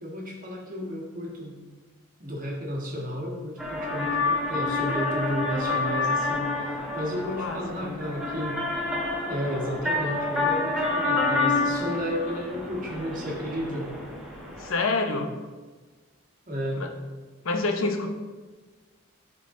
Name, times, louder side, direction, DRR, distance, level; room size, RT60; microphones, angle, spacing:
voice 1, 0.0-1.6 2.2-8.6 9.3-13.9 16.5-16.8, equal, 40° right, -2 dB, 1.5 m, -33 dB
sound 1, 3.6-14.7, left 2 dB, ahead, 1.1 m, -28 dB
voice 2, 7.4-8.0 14.6-15.3 16.8-16.9 17.4-18.1, left 3 dB, 70° left, 5 dB, 0.8 m, -27 dB
11.5 x 3.9 x 3.7 m, 1.3 s
head